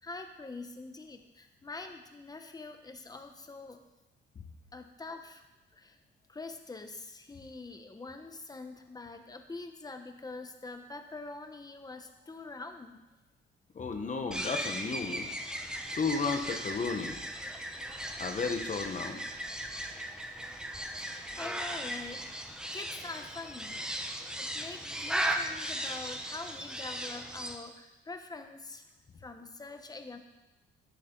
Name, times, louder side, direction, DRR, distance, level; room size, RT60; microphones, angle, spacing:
voice 1, 0.0-3.8 4.7-5.4 5.7-6.0 6.3-13.0 20.1-20.2 21.0-23.8 24.4-28.9 29.2-30.2, left 3 dB, 20° left, 6 dB, 1.1 m, -45 dB
voice 2, 13.7-15.3 15.9-17.2 18.2-19.2, left 4 dB, 35° left, 5 dB, 1.3 m, -33 dB
sound 1, 14.3-27.6, right 1 dB, 5° right, 1.0 m, -37 dB
12.0 x 10.5 x 4.0 m, 1.0 s
cardioid pair, 115°, 21 cm